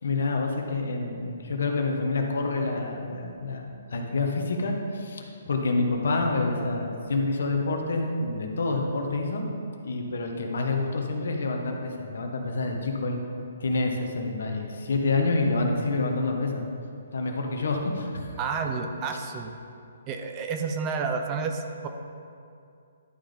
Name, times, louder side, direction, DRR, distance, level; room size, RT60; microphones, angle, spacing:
voice 1, 0.0-9.4 9.8-13.2 13.6-16.6 17.1-18.3, left 3 dB, 75° left, 2 dB, 1.1 m, -27 dB
voice 2, 18.4-19.5 20.1-21.9, right 5 dB, 20° right, 5 dB, 0.5 m, -30 dB
11.5 x 4.0 x 5.0 m, 2.5 s
hypercardioid pair, 165°, 0 cm